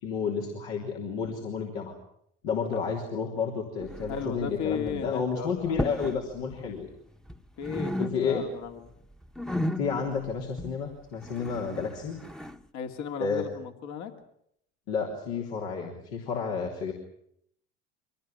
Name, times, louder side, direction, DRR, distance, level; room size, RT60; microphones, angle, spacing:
voice 1, 0.0-1.9 2.4-6.9 8.0-8.4 9.8-12.2 13.2-13.4 14.9-16.9, left 5 dB, 80° left, -1 dB, 3.5 m, -31 dB
sound 1, 3.8-4.5 4.7-5.1 5.6-6.2 6.5-7.4 7.6-8.6 8.9-12.6, left 1 dB, ahead, 1.1 m, -35 dB
voice 2, 4.1-5.7 7.6-8.9 12.7-14.1, left 7 dB, 65° left, 5 dB, 2.6 m, -35 dB
24.0 x 18.0 x 9.1 m, 0.72 s
hypercardioid pair, 70°, 31 cm